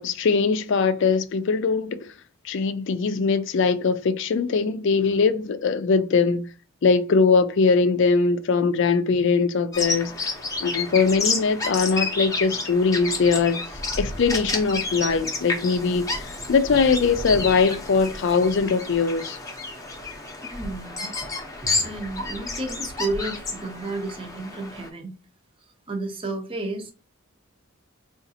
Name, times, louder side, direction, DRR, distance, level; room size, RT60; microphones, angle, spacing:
voice 1, 0.0-2.0 2.5-6.4 6.8-10.1 10.6-13.6 14.0-16.2 16.5-19.4, left 4 dB, 60° left, 0.4 m, -21 dB
Bird vocalization bird call bird song, 9.7-24.9, left 3 dB, 15° left, 0.7 m, -30 dB
voice 2, 20.4-21.1 21.6-25.1 25.9-26.9, right 2 dB, 25° right, 0.7 m, -32 dB
3.8 x 2.4 x 2.7 m
head